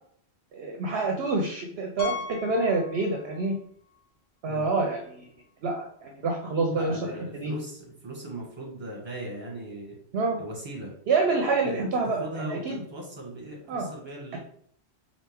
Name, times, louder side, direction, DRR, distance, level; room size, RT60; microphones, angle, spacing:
voice 1, 0.5-3.5 4.4-5.3 5.6-7.0 7.4-7.5 10.1-10.4 11.1-12.8 13.7-13.9, right 3 dB, 65° right, 1 dB, 0.8 m, -27 dB
Piano, 2.0-3.6 3.9-4.0 4.6-4.7 4.9-5.0 7.1-7.2, left 6 dB, 65° left, 1.1 m, -38 dB
voice 2, 6.7-10.0 10.4-10.9 11.6-14.4, right 1 dB, 25° right, -2 dB, 1.3 m, -39 dB
4.3 x 2.7 x 3.4 m, 0.62 s
omnidirectional pair, 1.1 m